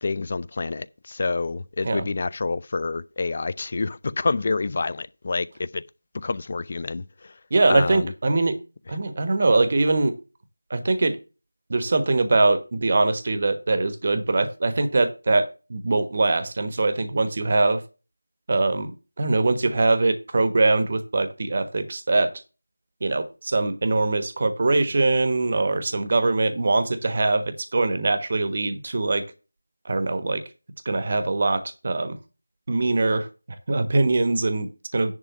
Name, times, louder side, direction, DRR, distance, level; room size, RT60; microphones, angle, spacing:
voice 1, 0.0-5.8 6.1-7.0 7.7-8.1, left 3 dB, 35° left, 0.4 m, -27 dB
voice 2, 7.5-8.6 8.9-10.2 10.7-11.2 11.7-17.8 18.5-18.9 19.2-22.3 23.0-29.2 29.8-30.4 30.8-32.2 32.7-33.3 33.7-35.1, right 3 dB, 35° right, 1.2 m, -22 dB
10.5 x 3.6 x 7.2 m
figure-of-eight pair, 170°, 0 cm